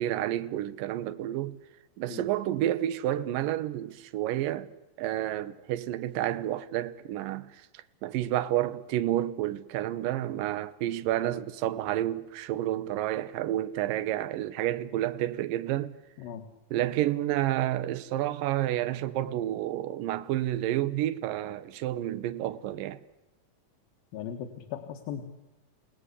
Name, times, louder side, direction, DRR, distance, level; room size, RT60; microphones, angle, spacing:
voice 1, 0.0-1.6 2.0-4.7 5.0-15.9 16.7-23.0, right 13 dB, 75° right, 2.6 m, -30 dB
voice 2, 24.1-25.2, left 9 dB, 80° left, 3.2 m, -38 dB
30.0 x 18.5 x 8.3 m
omnidirectional pair, 4.1 m